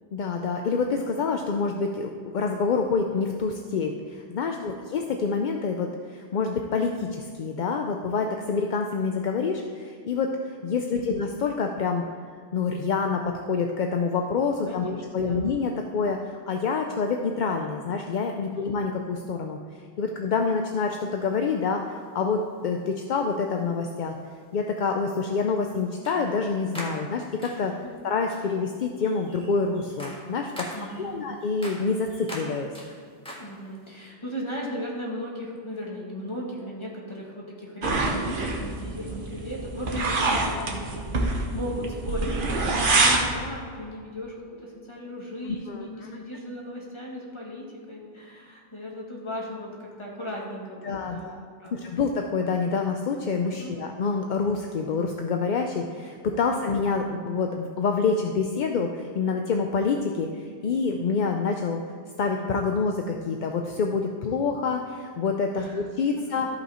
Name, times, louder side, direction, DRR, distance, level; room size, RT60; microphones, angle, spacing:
voice 1, 0.1-12.1 12.5-19.6 20.0-21.8 22.1-24.2 24.5-27.7 28.0-30.7 31.0-32.7 45.5-46.1 50.8-61.8 62.2-66.5, left 4 dB, 55° left, 3 dB, 0.6 m, -27 dB
voice 2, 4.4-4.8 10.8-11.1 14.6-15.5 18.4-18.7 27.9-28.0 30.7-31.3 33.4-51.3 51.6-52.0 53.5-53.7 56.5-56.8 65.5-65.8 66.2-66.5, equal, 25° left, -4 dB, 1.9 m, -37 dB
sound 1, 20.7-20.8 22.4-22.6 23.6-23.7 26.0-26.4 26.7-27.8 28.3-28.6 29.0-33.9, equal, 5° left, 1.5 m, -42 dB
sound 2, 37.8-43.3, right 2 dB, 50° right, 1.2 m, -26 dB
13.5 x 5.6 x 4.3 m, 2.1 s
omnidirectional pair, 1.2 m